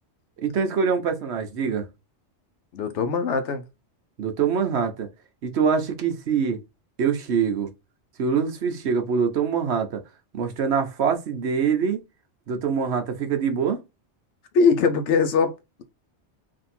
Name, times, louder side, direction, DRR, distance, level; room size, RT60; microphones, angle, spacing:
voice 1, 0.4-1.8 4.2-5.1 5.4-6.6 7.0-7.7 8.2-10.0 10.3-12.0 12.5-13.8, right 6 dB, 70° right, 1.1 m, -24 dB
voice 2, 2.7-3.6 14.5-15.8, left 5 dB, 80° left, 1.0 m, -21 dB
3.6 x 2.6 x 4.2 m
omnidirectional pair, 1.2 m